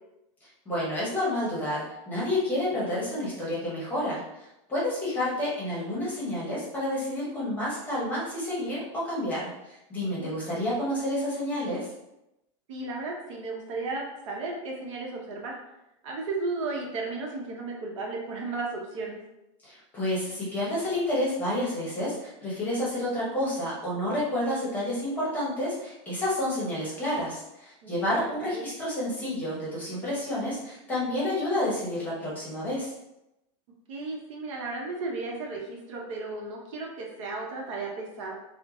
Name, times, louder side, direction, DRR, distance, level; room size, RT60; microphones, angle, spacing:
voice 1, 0.7-11.9 19.6-32.9, left 1 dB, 10° left, -6 dB, 0.8 m, -30 dB
voice 2, 12.7-15.6 16.0-19.2 27.8-28.7 33.9-38.4, right 3 dB, 75° right, -1 dB, 0.9 m, -34 dB
3.2 x 2.1 x 3.8 m, 0.89 s
supercardioid pair, 175°, 16 cm